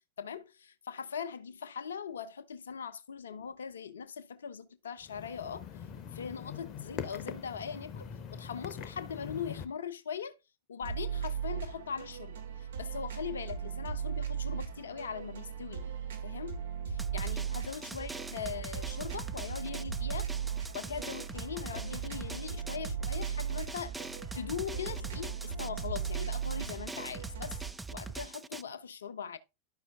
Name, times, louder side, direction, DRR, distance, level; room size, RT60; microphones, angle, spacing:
voice 1, 0.2-5.7 6.1-10.4 10.7-15.9 16.2-16.6 16.9-20.3 20.7-24.0 24.3-27.6 27.9-29.4, left 7 dB, 65° left, 0.9 m, -40 dB
sound 1, 5.0-9.6, left 8 dB, 35° left, 1.0 m, -43 dB
sound 2, 10.8-27.7, right 8 dB, 60° right, 2.4 m, -38 dB
Drum, 17.0-28.6, right 4 dB, 5° right, 0.4 m, -42 dB
11.5 x 6.0 x 3.6 m
figure-of-eight pair, 90°, 0 cm